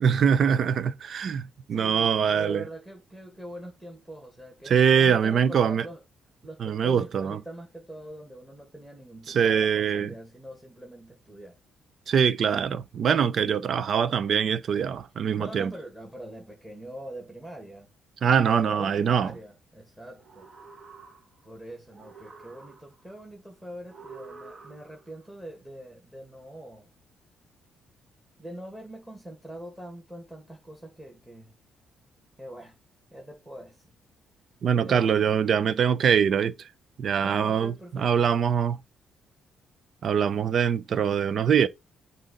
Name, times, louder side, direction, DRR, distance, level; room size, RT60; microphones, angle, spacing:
voice 1, 0.0-2.6 4.7-5.8 6.6-7.4 9.3-10.1 12.1-15.7 18.2-19.3 34.6-36.5 37.0-38.8 40.0-41.7, right 7 dB, 60° right, 0.5 m, -23 dB
voice 2, 1.7-6.0 6.4-11.6 15.4-17.9 18.2-20.5 21.4-26.9 28.4-31.6 32.4-32.8 33.1-33.9 34.8-35.1 37.2-38.3, right 1 dB, 10° right, 2.0 m, -43 dB
sound 1, 20.1-21.5 21.9-23.1 23.9-25.2, right 4 dB, 35° right, 1.2 m, -48 dB
7.5 x 2.6 x 5.3 m
cardioid pair, 90°, 0 cm